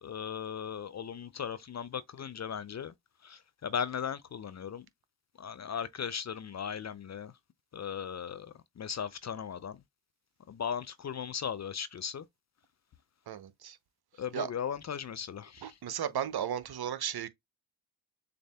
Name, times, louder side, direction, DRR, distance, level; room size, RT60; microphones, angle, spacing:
voice 1, 0.0-2.9 3.2-4.8 5.4-7.3 7.7-9.8 10.5-12.3 14.2-15.7, left 7 dB, 35° left, 0.5 m, -37 dB
voice 2, 13.3-13.8 14.3-14.5 15.6-17.3, right 9 dB, 50° right, 0.8 m, -35 dB
6.6 x 2.6 x 2.2 m
supercardioid pair, 50°, 49 cm